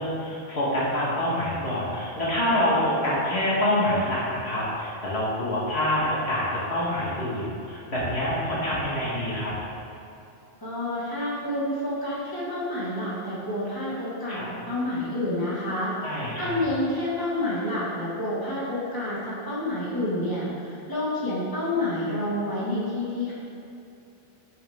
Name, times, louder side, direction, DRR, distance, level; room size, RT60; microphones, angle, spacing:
voice 1, 0.0-9.5 14.3-14.5 16.0-16.6, left 1 dB, 75° left, -7 dB, 2.1 m, -26 dB
voice 2, 10.6-15.9 16.4-23.3, left 1 dB, 20° left, -8 dB, 2.1 m, -29 dB
9.9 x 6.4 x 3.7 m, 2.7 s
omnidirectional pair, 1.1 m